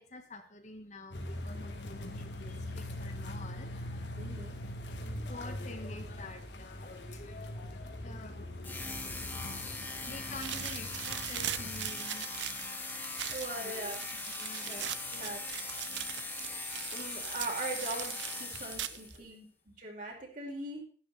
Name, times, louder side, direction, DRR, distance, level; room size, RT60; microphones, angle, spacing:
voice 1, 0.0-4.2 5.0-8.6 9.8-12.3 13.5-13.9 14.4-15.4 18.7-19.4, left 2 dB, 40° left, 6 dB, 1.5 m, -49 dB
sound 1, 1.1-11.9, left 1 dB, 90° left, 2.5 m, -42 dB
voice 2, 4.2-4.6 13.3-14.1 14.6-15.4 16.2-20.8, right 2 dB, 50° right, 0 dB, 4.9 m, -41 dB
sound 2, 8.6-19.2, left 3 dB, 10° left, 2.2 m, -40 dB
sound 3, 10.4-19.2, right 12 dB, 90° right, 0.7 m, -41 dB
12.5 x 11.5 x 4.2 m, 0.42 s
head